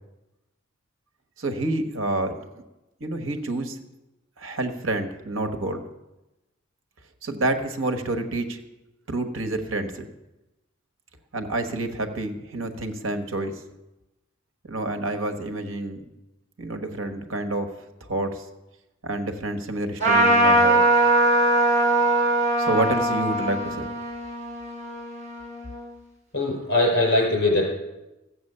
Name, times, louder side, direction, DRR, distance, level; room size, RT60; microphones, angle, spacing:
voice 1, 1.4-2.6 3.0-3.8 4.4-5.8 7.2-8.6 9.1-10.1 11.3-13.5 14.6-16.0 16.6-17.7 18.0-18.5 19.0-20.8 22.6-23.9, right 2 dB, 75° right, 7 dB, 1.3 m, -28 dB
Trumpet, 20.0-25.8, right 1 dB, 35° right, 4.7 m, -21 dB
voice 2, 26.3-27.7, left 2 dB, 60° left, 0 dB, 4.9 m, -21 dB
14.5 x 7.9 x 6.7 m, 1.0 s
head